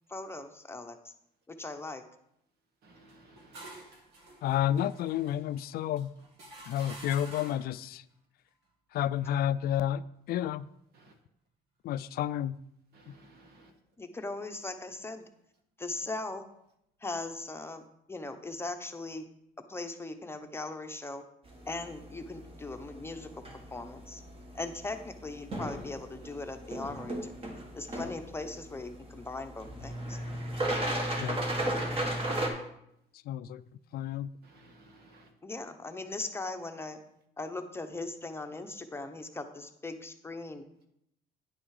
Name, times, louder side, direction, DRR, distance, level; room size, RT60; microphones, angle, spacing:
voice 1, 0.1-1.1 1.5-2.0 14.0-15.3 15.8-16.4 17.0-19.3 19.7-21.2 21.7-23.3 23.7-24.2 24.5-27.3 27.7-30.2 35.4-37.0 37.4-40.7, left 2 dB, 15° left, 6 dB, 0.8 m, -39 dB
voice 2, 2.8-3.7 10.9-11.2 12.9-13.7 31.7-32.4 34.4-35.3, right 2 dB, 70° right, 5 dB, 1.7 m, -58 dB
sound 1, 3.1-7.8, right 2 dB, 85° right, 1.9 m, -50 dB
voice 3, 4.4-6.1 6.7-8.0 8.9-10.0 10.3-10.6 11.8-12.5 31.2-31.4 33.3-33.6 33.9-34.3, left 11 dB, 65° left, 16 dB, 0.4 m, -30 dB
sound 2, 21.5-32.5, right 1 dB, 35° right, 1.8 m, -36 dB
10.0 x 6.2 x 4.8 m, 0.77 s
cardioid pair, 110°, 17 cm